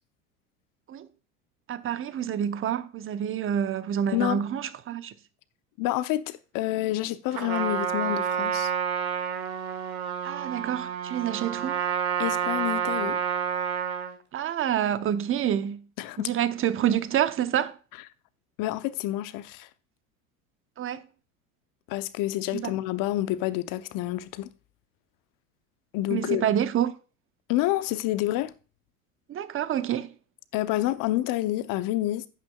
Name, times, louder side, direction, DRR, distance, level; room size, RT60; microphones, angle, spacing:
voice 1, 1.7-5.1 10.2-11.8 14.3-15.8 16.2-17.8 20.8-21.0 22.5-22.7 26.1-26.9 29.3-30.1, right 10 dB, 30° right, 0.9 m, -27 dB
voice 2, 4.1-4.4 5.8-8.7 12.2-13.2 16.0-16.3 18.6-19.7 21.9-24.5 25.9-26.5 27.5-28.5 30.5-32.3, left 15 dB, 50° left, 0.8 m, -28 dB
Trumpet, 7.3-14.2, right 8 dB, 85° right, 1.7 m, -29 dB
12.0 x 8.8 x 2.3 m
hypercardioid pair, 85°, 42 cm